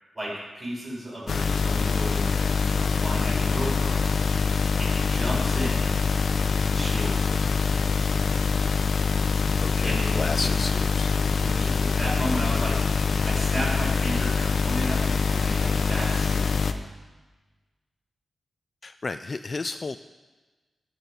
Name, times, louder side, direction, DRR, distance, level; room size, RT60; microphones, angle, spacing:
voice 1, 0.1-4.1 4.8-5.9 6.6-7.4 9.8-10.5 11.4-12.8 13.2-16.8, equal, 20° right, -5 dB, 5.6 m, -33 dB
sound 1, 1.3-16.7, left 4 dB, 55° left, 0.7 m, -24 dB
voice 2, 9.6-11.1 18.8-20.0, left 3 dB, 30° left, 10 dB, 0.3 m, -32 dB
13.5 x 5.9 x 9.6 m, 1.2 s
wide cardioid pair, 160°, 0 cm